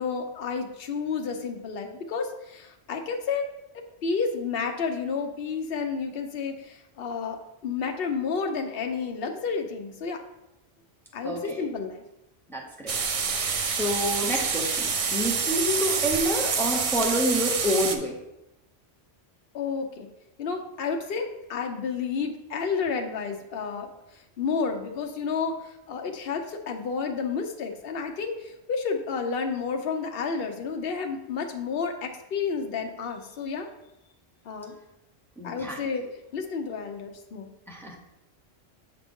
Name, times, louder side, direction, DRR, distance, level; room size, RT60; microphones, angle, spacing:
voice 1, 0.0-3.5 3.7-10.2 11.1-12.0 19.5-20.1 20.4-33.7 34.4-34.7 35.4-36.0 36.3-37.5, left 5 dB, 65° left, 4 dB, 0.9 m, -31 dB
voice 2, 11.2-11.6 12.5-13.0 13.4-18.2 35.4-35.8 37.7-38.0, equal, ahead, -1 dB, 0.9 m, -28 dB
sound 1, 12.9-18.0, right 5 dB, 45° right, 0.5 m, -27 dB
6.4 x 5.0 x 3.6 m, 0.90 s
omnidirectional pair, 1.1 m